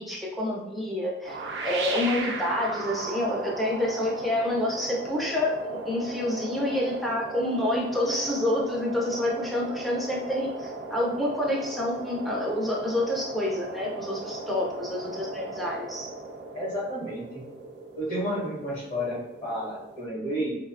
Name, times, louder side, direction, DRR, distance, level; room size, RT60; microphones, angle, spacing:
voice 1, 0.0-16.1, left 1 dB, ahead, -3 dB, 0.4 m, -28 dB
sound 1, 1.2-20.1, right 3 dB, 70° right, 0.3 m, -37 dB
voice 2, 16.5-17.5 18.0-20.6, equal, 40° left, -7 dB, 0.8 m, -31 dB
2.6 x 2.0 x 2.4 m, 0.95 s
head